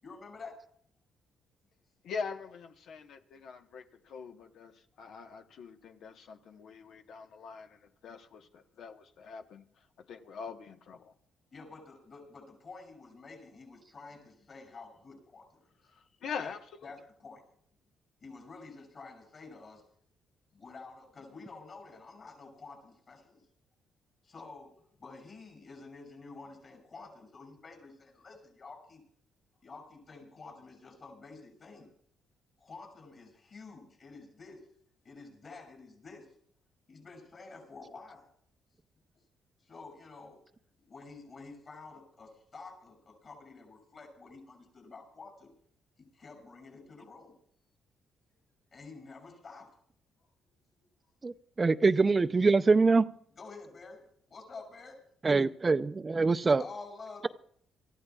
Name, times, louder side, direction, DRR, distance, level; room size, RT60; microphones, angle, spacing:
voice 1, 0.0-0.6 11.5-15.7 16.4-16.5 16.8-17.4 18.2-19.8 20.5-23.4 24.2-29.0 29.6-31.9 32.6-34.7 35.0-36.3 36.9-38.3 38.9-39.0 39.6-40.4 40.8-45.5 46.0-47.4 48.7-49.7 50.2-50.3 50.8-50.9 53.3-55.0 56.6-57.2, left 3 dB, 45° left, 6.7 m, -49 dB
voice 2, 2.0-9.6 10.1-11.1 15.9-16.9, left 5 dB, 70° left, 1.2 m, -43 dB
voice 3, 51.2-53.1 55.2-56.6, right 4 dB, 30° right, 0.5 m, -24 dB
26.5 x 14.5 x 2.4 m
cardioid pair, 90°, 0 cm